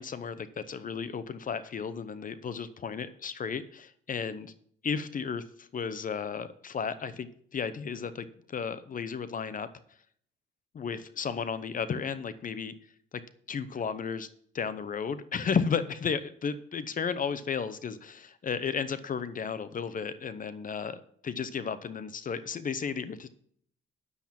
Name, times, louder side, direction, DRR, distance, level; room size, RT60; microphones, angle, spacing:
voice 1, 0.0-4.5 4.8-9.7 10.7-12.7 13.5-14.3 14.5-23.3, left 6 dB, 45° left, 13 dB, 0.8 m, -33 dB
9.7 x 7.4 x 5.9 m, 0.62 s
cardioid pair, 90°, 20 cm